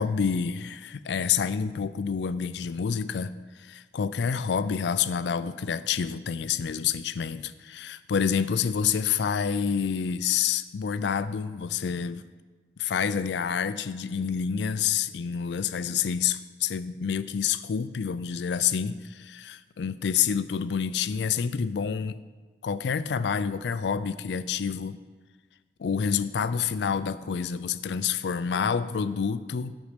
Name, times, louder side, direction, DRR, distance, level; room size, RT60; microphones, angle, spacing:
voice 1, 0.0-12.3 12.8-22.2 22.6-25.0 25.8-29.7, left 7 dB, 75° left, 14 dB, 0.4 m, -28 dB
8.2 x 6.4 x 5.1 m, 1.3 s
head